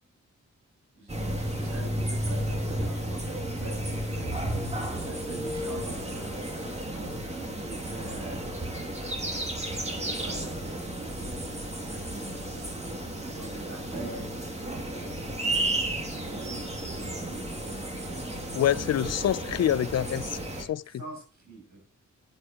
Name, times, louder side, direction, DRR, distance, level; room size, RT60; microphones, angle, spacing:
voice 1, 0.9-8.5 9.7-14.3 14.9-15.8 16.2-18.2 20.8-21.8, right 3 dB, 65° right, 6.3 m, -46 dB
sound 1, 1.1-20.6, right 1 dB, 20° right, 2.4 m, -33 dB
voice 2, 18.5-20.3 20.6-20.8, left 11 dB, 60° left, 0.5 m, -26 dB
11.0 x 10.0 x 2.9 m
wide cardioid pair, 115°, 30 cm